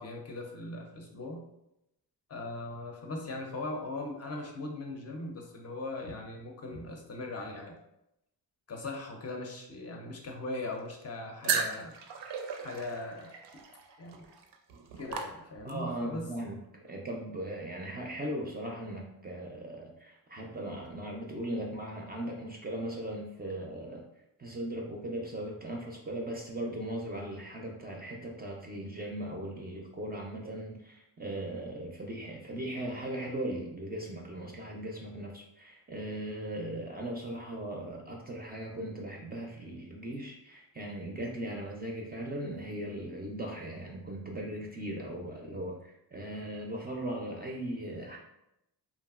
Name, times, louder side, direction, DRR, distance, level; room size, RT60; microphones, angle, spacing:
voice 1, 0.0-1.4 2.3-7.8 8.7-11.9 12.6-13.6 14.0-14.3 15.0-16.3, left 2 dB, 40° left, 1 dB, 0.5 m, -39 dB
sound 1, 11.4-15.9, right 6 dB, 80° right, 0.5 m, -36 dB
voice 2, 15.6-16.6 16.9-24.0 24.4-48.2, right 1 dB, 25° right, -1 dB, 0.4 m, -38 dB
2.9 x 2.4 x 2.3 m, 0.85 s
cardioid pair, 100°, 41 cm